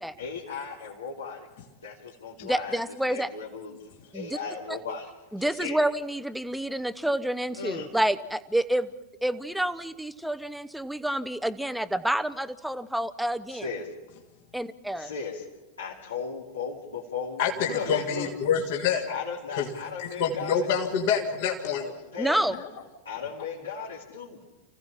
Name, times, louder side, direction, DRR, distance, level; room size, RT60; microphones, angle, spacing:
voice 1, 0.2-2.8 3.1-3.8 4.1-5.8 7.5-7.9 13.5-13.9 14.9-15.4 15.8-18.3 19.1-20.9 21.8-22.5 23.0-24.4, left 5 dB, 70° left, -5 dB, 3.1 m, -36 dB
voice 2, 2.4-3.3 4.1-4.4 4.7-4.8 5.3-8.9 9.2-13.7 14.5-15.1 22.2-22.6, right 1 dB, ahead, 13 dB, 0.9 m, -28 dB
voice 3, 17.4-19.1 19.5-19.7 20.0-21.8, left 7 dB, 50° left, 1 dB, 2.3 m, -26 dB
30.0 x 16.0 x 5.7 m, 1.1 s
figure-of-eight pair, 90°, 0 cm